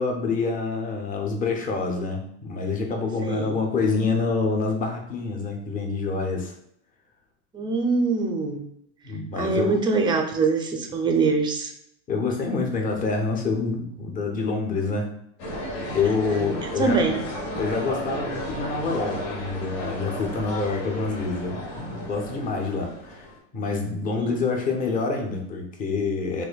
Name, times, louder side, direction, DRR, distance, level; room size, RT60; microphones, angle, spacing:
voice 1, 0.0-6.5 9.0-9.8 12.1-15.1 15.9-17.1 17.6-23.3 23.5-26.4, left 4 dB, 25° left, 2 dB, 0.7 m, -27 dB
voice 2, 3.2-3.6 7.5-8.6 9.3-11.7 16.3-17.2 24.2-24.4, right 4 dB, 15° right, 3 dB, 0.4 m, -24 dB
sound 1, 15.4-23.4, left 1 dB, 60° left, 1.2 m, -33 dB
4.4 x 2.6 x 2.2 m, 0.71 s
supercardioid pair, 120°, 35 cm